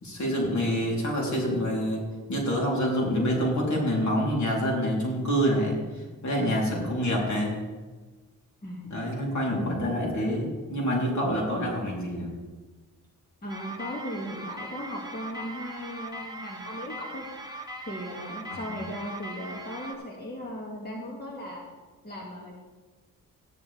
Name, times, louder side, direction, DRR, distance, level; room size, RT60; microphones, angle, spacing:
voice 1, 0.0-2.0 2.3-7.6 8.9-12.3 18.5-18.6, equal, 60° left, -3 dB, 3.7 m, -27 dB
voice 2, 13.4-17.3 17.8-21.6 22.0-22.5, equal, 30° left, -2 dB, 2.4 m, -37 dB
sound 1, 13.5-19.9, right 1 dB, 10° right, 1.5 m, -40 dB
13.0 x 10.5 x 3.5 m, 1.3 s
cardioid pair, 75°, 33 cm